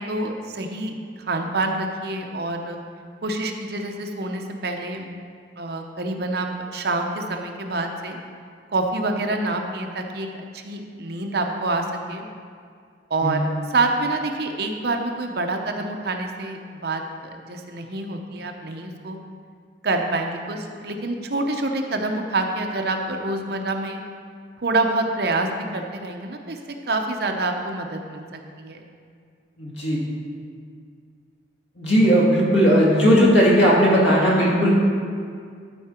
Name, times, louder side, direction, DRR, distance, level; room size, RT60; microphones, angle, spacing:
voice 1, 0.0-2.8 3.2-5.0 5.6-8.2 8.7-10.3 10.5-12.3 13.1-19.2 19.8-24.0 24.6-26.6 26.9-28.2 28.6-28.9, right 2 dB, 60° right, 3 dB, 0.8 m, -27 dB
voice 2, 29.6-30.0 31.8-34.7, equal, 90° left, -5 dB, 2.3 m, -17 dB
12.5 x 4.8 x 4.4 m, 2.2 s
head